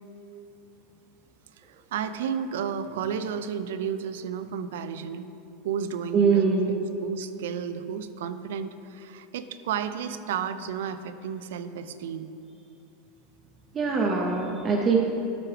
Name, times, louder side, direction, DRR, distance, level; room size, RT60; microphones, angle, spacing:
voice 1, 1.6-5.3 5.6-6.4 7.0-12.3, right 7 dB, 85° right, 11 dB, 0.4 m, -32 dB
voice 2, 6.1-6.7 13.7-15.0, right 5 dB, 15° right, -1 dB, 0.5 m, -22 dB
12.5 x 6.0 x 3.3 m, 2.8 s
supercardioid pair, 180°, 0 cm